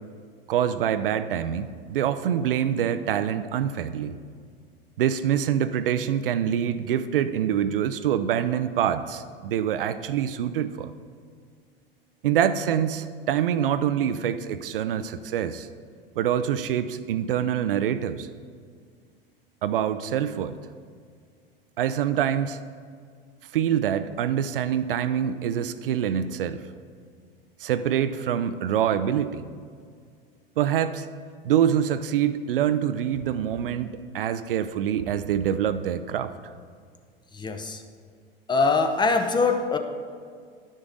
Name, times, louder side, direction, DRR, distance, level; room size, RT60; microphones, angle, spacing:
voice 1, 0.5-4.1 5.0-10.9 12.2-15.7 16.2-18.3 19.6-20.5 21.8-22.6 23.5-26.6 27.6-29.4 30.6-31.1 31.4-36.3, right 9 dB, 70° right, 13 dB, 0.4 m, -25 dB
voice 2, 37.3-37.8 38.5-39.8, left 4 dB, 15° left, 6 dB, 0.7 m, -23 dB
11.0 x 6.3 x 3.8 m, 2.1 s
figure-of-eight pair, 80°, 29 cm